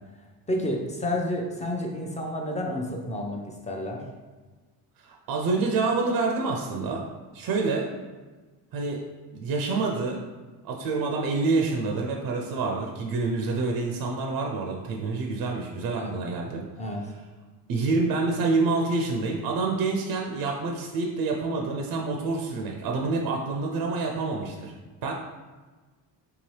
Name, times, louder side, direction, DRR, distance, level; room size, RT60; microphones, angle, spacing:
voice 1, 0.5-4.0 16.0-16.1 16.8-17.1, left 1 dB, 15° left, 0 dB, 0.6 m, -30 dB
voice 2, 5.0-7.0 7.3-7.9 8.7-9.0 9.3-10.2 10.6-16.6 17.7-24.7 25.0-25.1, right 3 dB, 60° right, 1 dB, 0.6 m, -27 dB
3.4 x 2.9 x 3.2 m, 1.3 s
cardioid pair, 90°, 40 cm